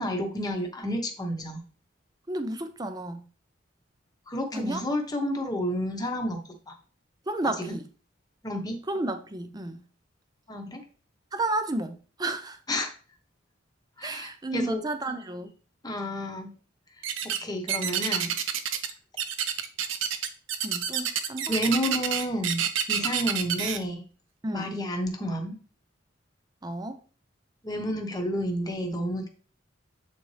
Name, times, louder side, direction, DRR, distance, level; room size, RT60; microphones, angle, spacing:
voice 1, 0.0-1.6 4.3-6.7 7.6-7.8 8.4-8.8 10.5-10.8 12.7-12.9 14.0-14.8 15.8-16.5 17.2-18.3 21.5-24.0 24.5-25.6 27.6-29.3, equal, 20° left, 1.0 m, -30 dB
voice 2, 2.3-3.3 4.5-4.8 7.3-7.9 8.9-9.8 11.3-12.6 14.0-15.5 20.6-21.5 24.4-24.7 26.6-27.0, right 2 dB, 20° right, 0.6 m, -32 dB
sound 1, 17.0-17.4 17.7-18.9 19.2-23.8, right 8 dB, 80° right, 0.6 m, -28 dB
7.6 x 4.2 x 3.3 m
head